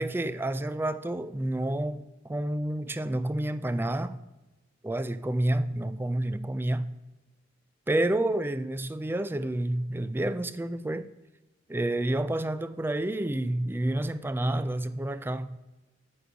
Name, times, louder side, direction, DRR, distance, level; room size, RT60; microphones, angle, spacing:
voice 1, 0.0-4.2 4.8-6.9 7.9-11.1 11.7-15.6, right 1 dB, 10° right, 0.3 m, -29 dB
9.4 x 5.2 x 6.8 m
head